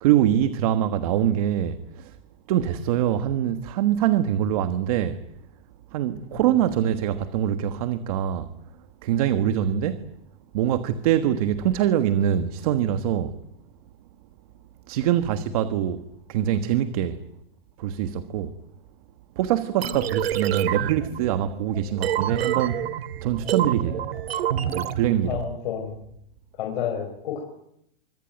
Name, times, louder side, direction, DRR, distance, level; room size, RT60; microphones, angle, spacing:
voice 1, 0.0-2.1 2.5-5.2 5.9-8.5 9.0-10.1 10.5-13.4 14.9-16.0 16.3-17.2 17.8-18.6 19.4-22.8 23.2-24.1 24.7-25.4, right 10 dB, 40° right, 1.4 m, -24 dB
sound 1, 19.8-25.5, right 10 dB, 85° right, 2.6 m, -28 dB
voice 2, 25.2-26.0 26.6-27.4, left 9 dB, 55° left, 5.4 m, -30 dB
25.5 x 24.5 x 9.3 m
supercardioid pair, 175°, 30 cm